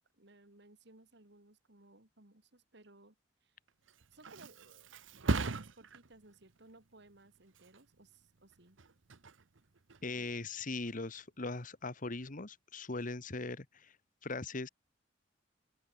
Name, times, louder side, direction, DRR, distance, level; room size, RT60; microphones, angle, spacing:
voice 1, 0.1-3.2 3.4-3.6 4.1-4.9 5.3-8.8 10.1-10.3, right 2 dB, 65° right, 3.1 m, -60 dB
Thump thud, 3.7-11.2 11.6-12.0, right 3 dB, 85° right, 1.0 m, -41 dB
voice 2, 10.0-14.0 14.2-14.7, left 3 dB, 45° left, 1.4 m, -40 dB
open air
head